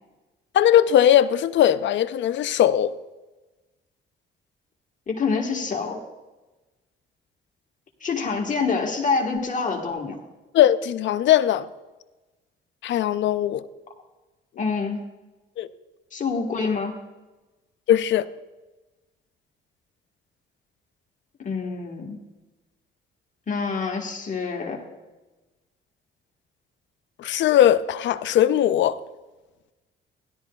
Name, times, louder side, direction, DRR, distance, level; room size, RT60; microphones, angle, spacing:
voice 1, 0.5-2.9 10.5-11.7 12.8-13.6 15.6-15.7 17.9-18.3 27.2-29.0, left 11 dB, 65° left, 0.5 m, -19 dB
voice 2, 5.1-6.0 8.0-10.2 14.6-15.0 16.1-17.0 21.4-22.2 23.5-24.8, left 4 dB, 40° left, 1.4 m, -26 dB
16.0 x 11.5 x 2.3 m
cardioid pair, 90°, 20 cm